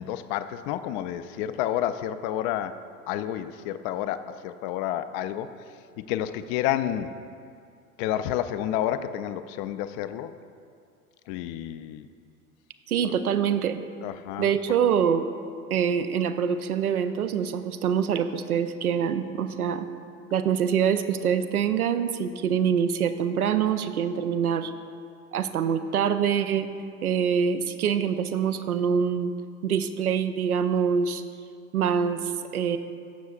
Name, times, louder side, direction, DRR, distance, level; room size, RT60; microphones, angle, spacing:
voice 1, 0.0-2.8 3.1-5.5 6.0-7.1 8.0-10.3 11.3-12.1 13.0-13.1 14.0-14.5, left 11 dB, 40° left, 12 dB, 0.4 m, -30 dB
voice 2, 12.9-13.8 14.4-15.3 15.7-19.9 20.3-24.7 25.3-26.7 27.0-29.3 29.6-31.2 31.7-32.8, right 7 dB, 85° right, 10 dB, 0.6 m, -25 dB
16.0 x 6.3 x 2.4 m, 2.3 s
figure-of-eight pair, 80°, 43 cm